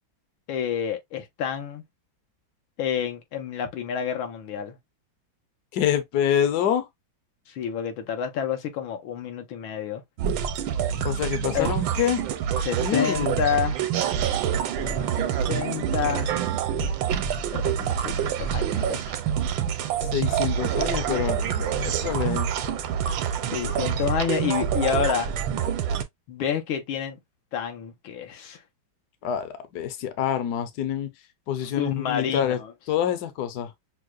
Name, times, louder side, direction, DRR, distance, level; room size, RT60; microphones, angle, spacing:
voice 1, 0.5-1.8 2.8-4.8 7.5-10.0 11.5-11.7 12.6-13.8 14.8-16.3 17.5-19.2 23.5-25.3 26.3-27.2 27.5-28.6 31.6-32.7, left 8 dB, 90° left, 1.7 m, -29 dB
voice 2, 5.7-6.9 11.0-12.2 12.8-13.4 20.1-22.5 29.2-31.1 31.5-32.6 32.9-33.7, left 9 dB, 65° left, 1.1 m, -26 dB
sound 1, 10.2-26.0, right 8 dB, 80° right, 1.3 m, -26 dB
6.3 x 2.2 x 2.3 m
omnidirectional pair, 2.1 m